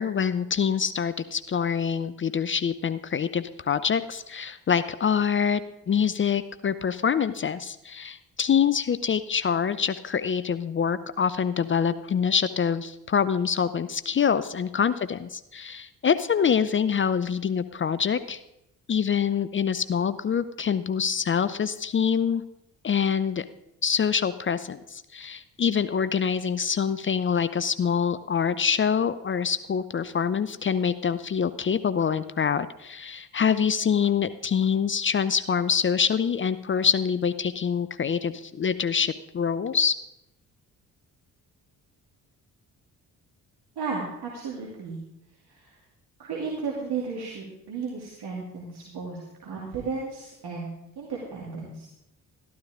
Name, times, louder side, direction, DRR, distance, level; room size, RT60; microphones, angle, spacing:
voice 1, 0.0-5.6 5.9-18.4 18.9-22.4 22.8-23.4 23.8-39.9, left 7 dB, 25° left, 14 dB, 0.5 m, -25 dB
voice 2, 43.8-45.0 45.5-45.8 46.2-51.9, right 4 dB, 50° right, -4 dB, 2.6 m, -34 dB
13.0 x 12.5 x 3.6 m, 0.86 s
figure-of-eight pair, 45°, 48 cm